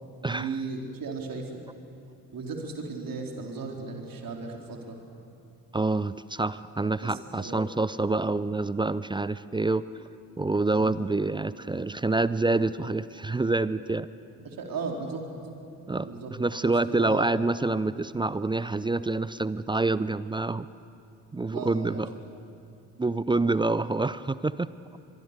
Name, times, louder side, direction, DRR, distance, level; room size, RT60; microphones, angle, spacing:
voice 1, 0.3-1.6 2.3-5.0 7.0-7.7 10.7-11.0 14.4-15.2 16.0-17.4 21.5-22.3, right 4 dB, 45° right, 1 dB, 3.9 m, -36 dB
voice 2, 5.7-9.8 10.4-14.1 15.9-16.1 16.4-20.7 21.3-22.1 23.0-24.7, right 3 dB, 10° right, 16 dB, 0.5 m, -27 dB
23.5 x 23.5 x 6.9 m, 2.5 s
figure-of-eight pair, 50°, 49 cm